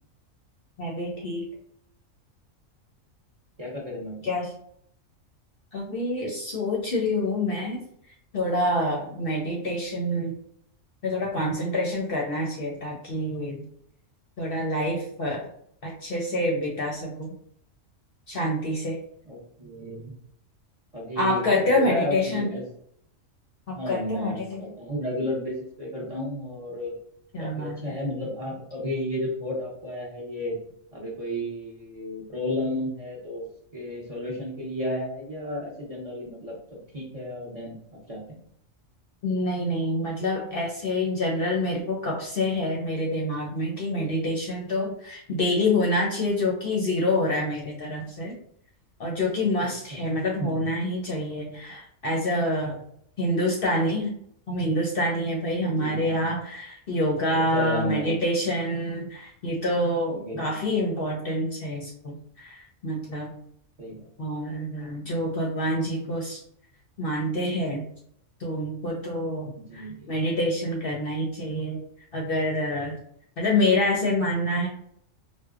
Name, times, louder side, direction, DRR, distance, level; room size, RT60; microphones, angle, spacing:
voice 1, 0.8-1.5 4.2-4.5 5.7-7.8 8.3-10.3 11.0-13.6 14.4-15.4 15.8-17.3 18.3-19.0 21.2-22.5 23.7-24.6 27.3-27.8 39.2-48.4 49.0-52.8 53.2-54.1 54.5-63.3 64.2-66.4 67.0-67.8 68.4-71.8 72.1-73.0 73.4-74.7, left 1 dB, 55° left, -1 dB, 0.7 m, -27 dB
voice 2, 3.6-4.2 19.2-20.1 20.9-22.6 23.7-26.9 27.4-30.6 30.9-37.8 38.1-38.4 49.6-50.0 50.4-50.6 55.6-56.3 57.3-58.3 60.1-60.6 63.8-64.1 69.6-70.1, left 1 dB, 35° right, -5 dB, 0.7 m, -33 dB
4.3 x 2.2 x 2.4 m, 0.68 s
omnidirectional pair, 1.4 m